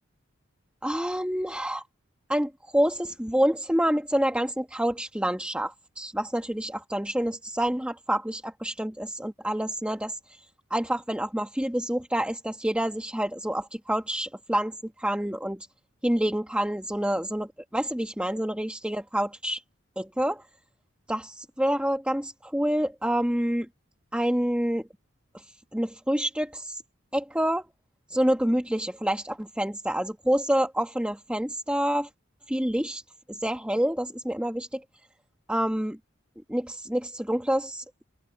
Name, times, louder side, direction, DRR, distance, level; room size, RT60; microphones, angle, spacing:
voice 1, 0.8-1.8 2.3-15.7 16.0-19.6 20.0-20.4 21.1-23.7 24.1-24.9 25.3-25.4 25.7-26.8 27.1-27.7 28.1-32.1 32.5-33.0 33.3-34.8 35.5-36.0 36.5-38.0, right 1 dB, 5° right, 1.4 m, -27 dB
head